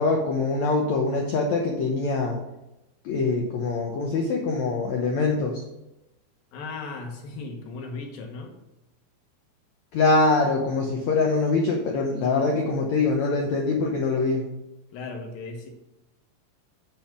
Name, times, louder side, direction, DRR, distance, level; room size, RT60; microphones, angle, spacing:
voice 1, 0.0-2.4 3.0-5.6 9.9-14.4, left 3 dB, 90° left, 0 dB, 1.5 m, -23 dB
voice 2, 6.5-8.5 14.9-15.7, left 3 dB, 70° left, 3 dB, 2.8 m, -36 dB
8.5 x 5.7 x 6.0 m, 0.92 s
omnidirectional pair, 4.7 m